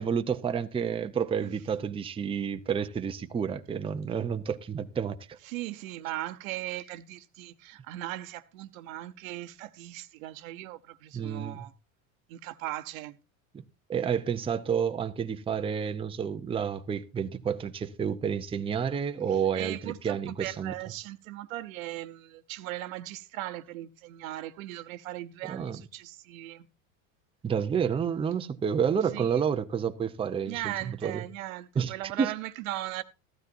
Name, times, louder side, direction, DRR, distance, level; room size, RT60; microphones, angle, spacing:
voice 1, 0.0-5.4 11.1-11.6 13.5-13.6 13.9-20.7 25.5-25.8 27.4-31.2 31.8-32.3, right 7 dB, 15° right, 0.6 m, -30 dB
voice 2, 5.4-11.7 12.3-13.2 19.5-26.7 29.1-29.3 30.4-33.0, right 15 dB, 80° right, 1.0 m, -38 dB
15.0 x 12.5 x 2.6 m
supercardioid pair, 115°, 40 cm